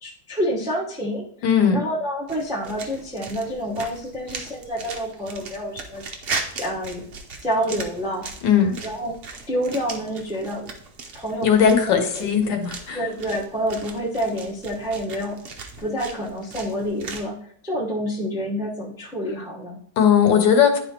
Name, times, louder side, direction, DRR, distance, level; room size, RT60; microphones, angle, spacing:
voice 1, 0.0-1.3 1.7-6.0 6.6-7.0 7.4-8.2 8.8-9.2 9.5-10.7 11.1-12.6 12.9-15.4 15.8-17.3 17.6-19.8, equal, 5° right, -3 dB, 0.3 m, -28 dB
voice 2, 1.4-1.8 8.4-8.8 11.4-13.0 20.0-20.8, left 7 dB, 75° left, 6 dB, 1.5 m, -18 dB
sound 1, 2.3-17.3, right 4 dB, 70° right, 0.5 m, -38 dB
10.5 x 4.2 x 2.8 m, 0.65 s
omnidirectional pair, 2.1 m